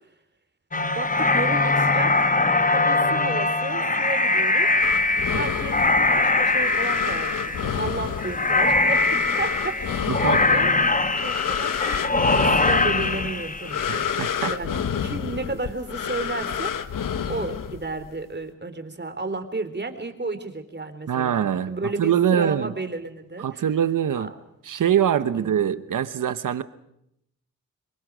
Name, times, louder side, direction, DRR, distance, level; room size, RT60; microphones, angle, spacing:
sound 1, 0.7-14.1, left 2 dB, 25° left, 1.2 m, -22 dB
voice 1, 1.0-4.7 5.3-5.8 6.1-10.8 11.2-14.2 14.5-16.7 17.2-23.6 24.2-24.3 25.3-25.5, right 3 dB, 35° right, 8 dB, 3.7 m, -33 dB
sound 2, 4.8-18.1, left 8 dB, 85° left, 1.3 m, -29 dB
sound 3, 5.7-12.5, left 1 dB, 55° left, 7.3 m, -48 dB
voice 2, 10.1-10.4 13.9-14.5 21.1-21.7 22.0-22.7 23.4-24.3 24.7-26.6, right 9 dB, 80° right, 13 dB, 1.1 m, -23 dB
26.0 x 23.0 x 6.3 m, 0.79 s
cardioid pair, 55°, 32 cm